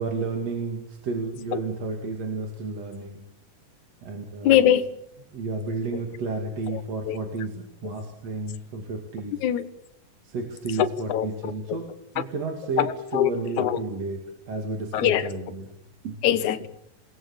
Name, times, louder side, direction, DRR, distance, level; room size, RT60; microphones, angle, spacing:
voice 1, 0.0-3.2 4.0-4.6 5.3-9.4 10.3-11.8 12.1-12.9 13.1-14.2 14.5-15.6 16.0-16.2, right 3 dB, 50° right, 3 dB, 3.3 m, -31 dB
voice 2, 4.4-4.9 5.9-6.0 6.7-7.2 7.8-7.9 9.3-9.7 10.7-11.8 12.2-12.3 12.8-13.8 14.9-15.3 16.2-16.7, left 11 dB, 65° left, 12 dB, 2.3 m, -24 dB
28.0 x 20.0 x 7.3 m, 0.76 s
omnidirectional pair, 4.0 m